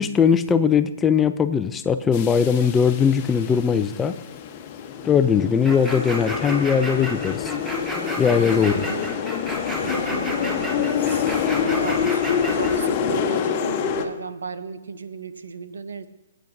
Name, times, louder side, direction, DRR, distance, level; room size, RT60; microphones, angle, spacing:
voice 1, 0.0-4.2 5.0-7.5 8.2-8.8, left 7 dB, 15° left, 11 dB, 0.4 m, -20 dB
sound 1, 2.1-14.0, left 7 dB, 35° left, 1.0 m, -26 dB
sound 2, 5.6-12.7, equal, 5° right, 1.4 m, -32 dB
voice 2, 8.6-9.1 9.8-16.1, right 5 dB, 80° right, 12 dB, 0.7 m, -35 dB
19.0 x 9.0 x 2.6 m, 0.96 s
hypercardioid pair, 145°, 0 cm